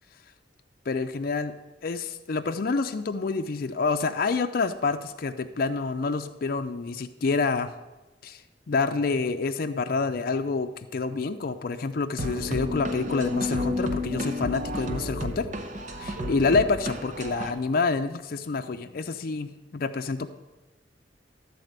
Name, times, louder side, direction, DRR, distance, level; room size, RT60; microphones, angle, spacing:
voice 1, 0.9-1.5 1.8-7.7 8.2-8.4 8.7-15.5 16.0-20.3, left 4 dB, 55° left, 7 dB, 0.5 m, -27 dB
sound 1, 12.2-17.5, left 1 dB, 45° right, 0.8 m, -31 dB
12.0 x 4.2 x 8.0 m, 1.1 s
head